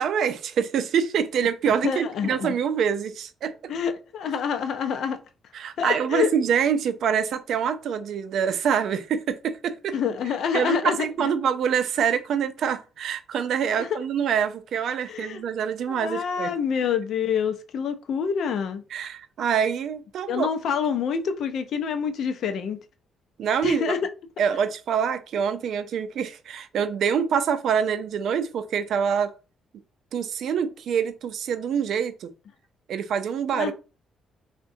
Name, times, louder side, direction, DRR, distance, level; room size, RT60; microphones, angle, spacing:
voice 1, 0.0-3.5 5.5-10.0 10.5-16.5 18.9-20.5 23.4-24.0 24.4-29.3 30.1-32.3 32.9-33.7, right 7 dB, 70° right, 0.3 m, -25 dB
voice 2, 1.8-2.5 3.7-5.2 5.8-6.3 9.9-11.3 13.8-14.0 15.1-15.4 15.9-18.8 20.3-22.8 23.6-24.0 33.5-33.7, left 7 dB, 70° left, 0.4 m, -27 dB
3.6 x 2.1 x 2.6 m
cardioid pair, 90°, 0 cm